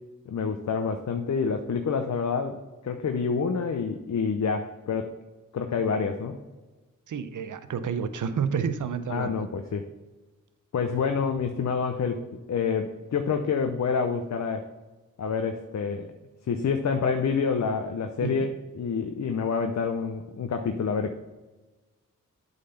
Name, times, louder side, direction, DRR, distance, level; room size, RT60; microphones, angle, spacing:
voice 1, 0.3-5.1 5.5-6.4 9.1-9.9 10.7-14.7 15.2-16.1 16.5-21.2, left 5 dB, 60° left, 6 dB, 0.7 m, -28 dB
voice 2, 7.1-9.5 18.2-18.5, right 6 dB, 70° right, 12 dB, 0.7 m, -30 dB
8.4 x 4.1 x 5.6 m, 1.2 s
cardioid pair, 55°, 32 cm